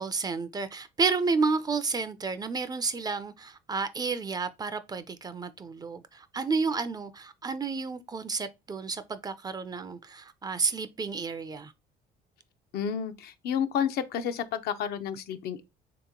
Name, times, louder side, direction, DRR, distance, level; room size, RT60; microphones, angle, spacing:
voice 1, 0.0-11.7, right 4 dB, 25° right, 0.4 m, -31 dB
voice 2, 12.7-15.6, left 8 dB, 70° left, 0.5 m, -30 dB
3.4 x 2.9 x 3.6 m
cardioid pair, 110°, 17 cm